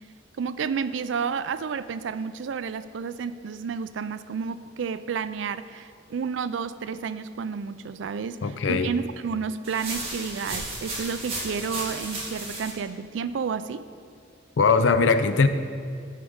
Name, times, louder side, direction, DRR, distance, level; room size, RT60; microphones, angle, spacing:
voice 1, 0.4-13.9, right 6 dB, 75° right, 13 dB, 0.4 m, -31 dB
voice 2, 8.4-8.9 14.6-15.5, left 4 dB, 80° left, 10 dB, 0.5 m, -20 dB
sound 1, 9.6-12.7, right 2 dB, 35° right, 2.2 m, -34 dB
13.0 x 4.9 x 5.1 m, 2.2 s
head